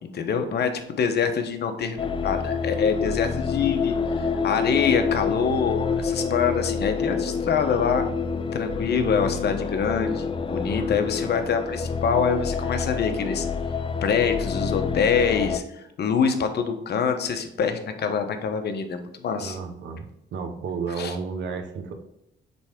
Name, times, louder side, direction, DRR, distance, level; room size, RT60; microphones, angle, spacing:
voice 1, 0.0-8.1 8.5-13.5 14.0-19.6 21.0-21.2, left 6 dB, 55° left, 6 dB, 1.0 m, -25 dB
sound 1, 2.0-15.6, left 5 dB, 25° left, 0.5 m, -27 dB
voice 2, 19.4-21.9, right 5 dB, 70° right, 6 dB, 1.1 m, -32 dB
8.0 x 3.4 x 3.6 m, 0.84 s
cardioid pair, 90°, 20 cm